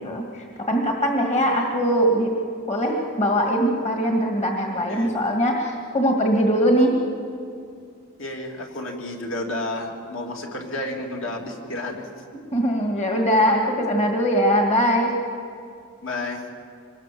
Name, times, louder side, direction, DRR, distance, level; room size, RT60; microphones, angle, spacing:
voice 1, 0.0-2.4 2.7-7.0 12.5-15.1, equal, 30° left, 2 dB, 2.0 m, -21 dB
voice 2, 8.2-12.1 16.0-16.4, left 2 dB, 60° left, 1 dB, 3.1 m, -31 dB
25.0 x 20.0 x 7.6 m, 2.3 s
head